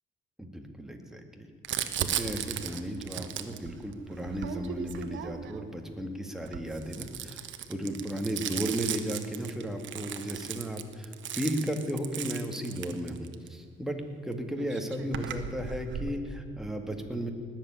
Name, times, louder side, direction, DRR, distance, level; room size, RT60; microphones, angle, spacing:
voice 1, 0.4-1.5 2.0-7.4 7.7-14.0 14.2-17.3, right 1 dB, ahead, 4 dB, 2.2 m, -35 dB
Crumpling crinkling, 1.6-5.7 6.4-13.5 14.3-14.4 14.6-16.2, right 9 dB, 70° right, 1.1 m, -36 dB
19.0 x 7.5 x 9.6 m, 2.4 s
cardioid pair, 90°, 20 cm